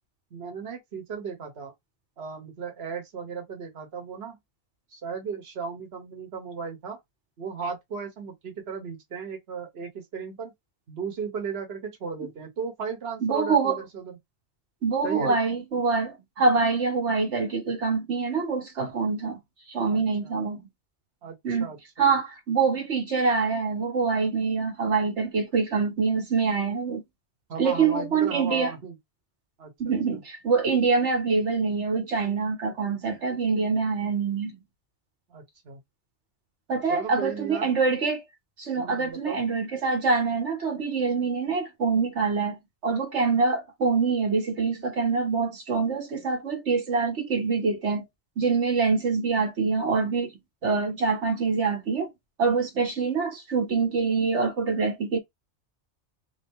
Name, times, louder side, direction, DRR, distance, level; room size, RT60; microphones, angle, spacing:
voice 1, 0.3-1.7 2.2-4.4 4.9-7.0 7.4-10.5 10.9-14.2 15.0-15.4 19.9-20.3 21.2-22.2 27.5-28.9 29.6-29.9 35.3-35.8 36.9-37.7 38.7-39.4, right 6 dB, 65° right, 1.4 m, -36 dB
voice 2, 13.2-13.8 14.8-19.4 19.7-20.6 21.4-21.7 22.0-27.0 27.6-28.7 29.8-34.6 36.7-38.2 38.6-42.6 42.8-48.0 48.4-50.3 50.6-52.1 52.4-55.2, right 4 dB, 85° right, 1.6 m, -25 dB
3.5 x 2.8 x 3.6 m
omnidirectional pair, 1.2 m